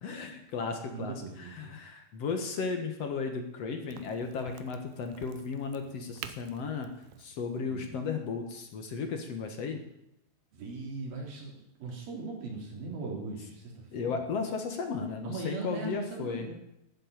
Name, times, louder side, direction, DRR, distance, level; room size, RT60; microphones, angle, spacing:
voice 1, 0.0-6.9 7.2-9.8 13.9-16.5, left 5 dB, 55° left, 5 dB, 1.9 m, -35 dB
voice 2, 0.9-1.7 7.7-7.9 10.5-14.2 15.2-16.5, right 3 dB, 65° right, -1 dB, 5.1 m, -39 dB
Crack, 3.9-9.3, right 11 dB, 80° right, 2.7 m, -50 dB
13.5 x 7.7 x 9.3 m, 0.81 s
omnidirectional pair, 4.6 m